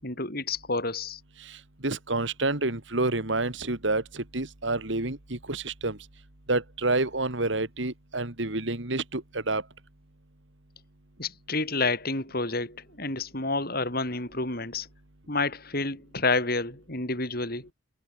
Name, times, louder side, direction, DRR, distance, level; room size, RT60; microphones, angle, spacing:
voice 1, 0.0-1.2 11.2-14.9 15.3-17.7, left 3 dB, 50° left, 5.7 m, -29 dB
voice 2, 1.4-6.0 6.5-9.6, right 2 dB, 65° right, 2.4 m, -29 dB
head